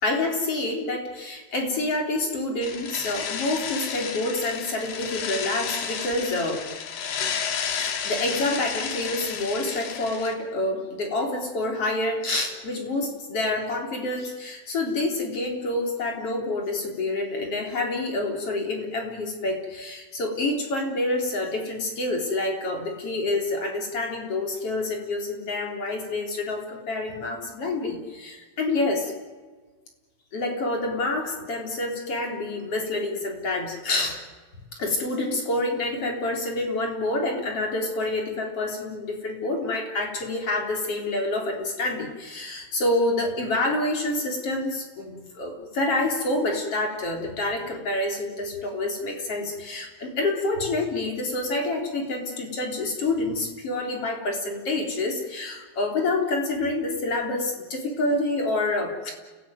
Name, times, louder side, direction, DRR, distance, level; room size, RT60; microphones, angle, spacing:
voice 1, 0.0-6.6 7.6-29.1 30.3-34.2 34.7-59.1, left 2 dB, 35° left, 2 dB, 4.4 m, -27 dB
sound 1, 2.6-10.3, left 7 dB, 85° left, 4.2 m, -32 dB
30.0 x 17.5 x 9.3 m, 1.3 s
omnidirectional pair, 4.5 m